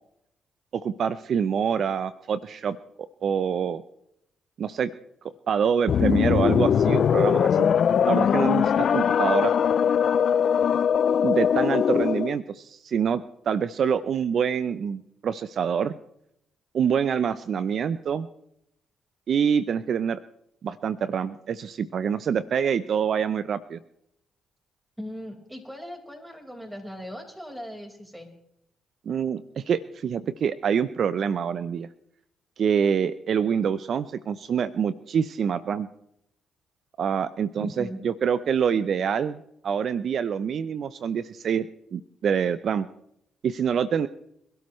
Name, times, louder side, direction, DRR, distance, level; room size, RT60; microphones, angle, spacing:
voice 1, 0.7-2.8 3.2-3.8 4.6-4.9 5.5-7.7 8.0-9.6 11.2-16.0 16.7-18.3 19.3-20.2 20.6-23.8 29.1-31.9 32.6-35.9 37.0-41.7 41.9-42.9 43.4-44.1, right 7 dB, 60° right, 15 dB, 0.6 m, -26 dB
sound 1, 5.9-12.4, left 8 dB, 60° left, 0.4 m, -21 dB
voice 2, 25.0-28.3 37.6-38.0, equal, 5° right, 2 dB, 4.6 m, -38 dB
26.5 x 12.5 x 3.1 m, 0.76 s
supercardioid pair, 65°, 0 cm